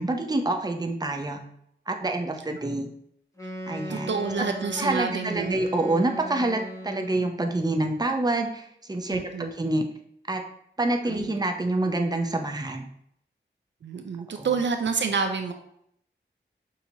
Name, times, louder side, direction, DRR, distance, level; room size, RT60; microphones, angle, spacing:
voice 1, 0.0-1.4 1.9-2.9 3.7-4.1 4.8-9.8 10.3-10.4 10.8-12.9 14.4-14.5, right 2 dB, 20° right, 4 dB, 0.6 m, -27 dB
Wind instrument woodwind instrument, 3.3-7.4, equal, 15° left, 1.2 m, -37 dB
voice 2, 3.9-5.6 9.1-9.5 11.1-11.3 13.8-15.5, right 5 dB, 70° right, 5 dB, 0.4 m, -28 dB
6.1 x 2.7 x 2.8 m, 0.71 s
wide cardioid pair, 55°, 20 cm